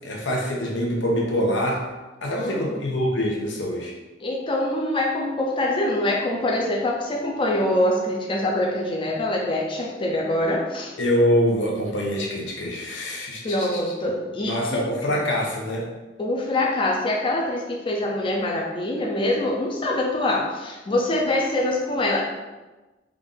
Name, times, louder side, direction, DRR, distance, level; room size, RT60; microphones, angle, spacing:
voice 1, 0.0-1.8 2.2-3.9 11.0-13.7 14.4-15.8, equal, 85° left, -1 dB, 0.8 m, -24 dB
voice 2, 2.3-2.8 4.2-10.9 13.4-14.8 15.1-15.2 16.2-22.2, left 1 dB, 30° left, -1 dB, 0.4 m, -24 dB
3.5 x 2.5 x 3.6 m, 1.1 s
head